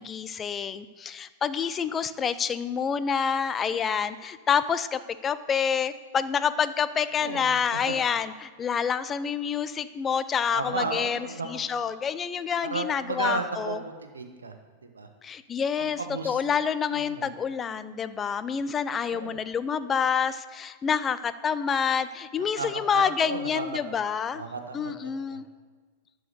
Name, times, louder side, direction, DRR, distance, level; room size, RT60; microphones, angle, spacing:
voice 1, 0.0-11.2 11.4-13.8 15.2-24.4 24.7-25.5, left 7 dB, 20° left, 14 dB, 0.5 m, -28 dB
voice 2, 7.2-7.5 7.7-8.0 10.5-11.6 12.7-14.5 14.9-15.1 16.0-16.4 16.9-17.3 18.9-19.4 22.5-22.7 22.9-23.9 24.3-25.4, right 3 dB, 75° right, 5 dB, 1.1 m, -34 dB
12.0 x 4.7 x 8.1 m, 1.4 s
figure-of-eight pair, 95°, 0 cm